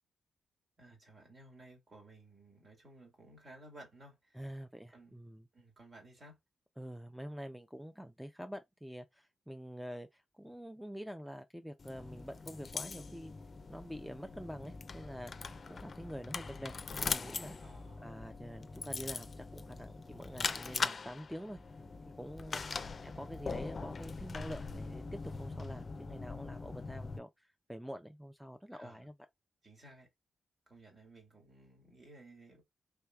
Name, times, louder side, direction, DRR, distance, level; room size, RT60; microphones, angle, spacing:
voice 1, 0.8-4.4 4.9-5.2 5.5-6.4 17.6-18.1 22.7-23.0 28.7-29.1 29.6-30.1 30.7-32.6, right 2 dB, 45° right, 2.0 m, -57 dB
voice 2, 4.3-5.4 6.8-13.3 13.7-15.3 15.7-17.6 18.0-21.6 22.2-29.1, equal, 5° right, 0.5 m, -46 dB
sound 1, 11.8-27.2, left 4 dB, 50° left, 0.5 m, -41 dB
3.4 x 3.2 x 2.3 m
supercardioid pair, 50°, 0 cm